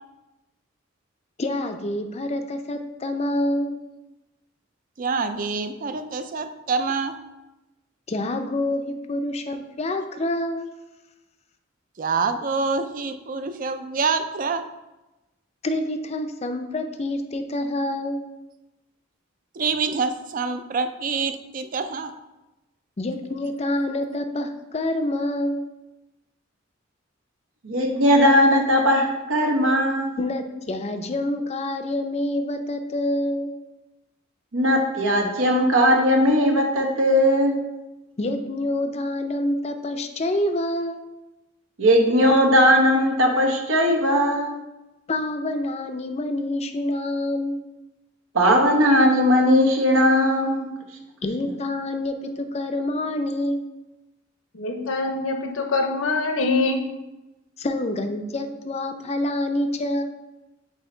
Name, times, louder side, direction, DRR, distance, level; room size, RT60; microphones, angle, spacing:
voice 1, 1.4-3.7 8.1-10.7 15.6-18.2 23.0-25.6 30.2-33.5 38.2-41.0 45.1-47.6 51.2-53.6 57.6-60.0, left 1 dB, 35° left, 7 dB, 0.5 m, -27 dB
voice 2, 5.0-7.2 12.0-14.6 19.6-22.1, right 4 dB, 40° right, 9 dB, 0.4 m, -26 dB
voice 3, 27.6-30.1 34.5-37.6 41.8-44.5 48.3-50.7, equal, 85° right, 1 dB, 1.1 m, -18 dB
voice 4, 54.5-56.8, left 3 dB, 80° left, 5 dB, 0.8 m, -24 dB
8.1 x 2.8 x 4.4 m, 1.0 s
head